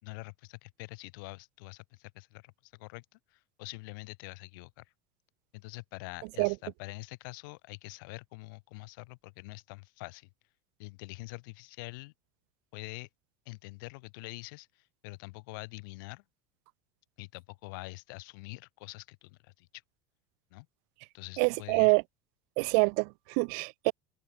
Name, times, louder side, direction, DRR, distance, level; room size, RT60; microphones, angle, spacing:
voice 1, 0.0-4.9 5.5-10.3 10.8-12.1 12.7-13.1 13.5-16.2 17.2-19.8 20.5-20.7 21.1-21.9, left 26 dB, 65° left, 2.7 m, -45 dB
voice 2, 21.4-22.0 22.6-23.9, right 40 dB or more, 55° right, 0.7 m, -26 dB
cardioid pair, 180°, 12 cm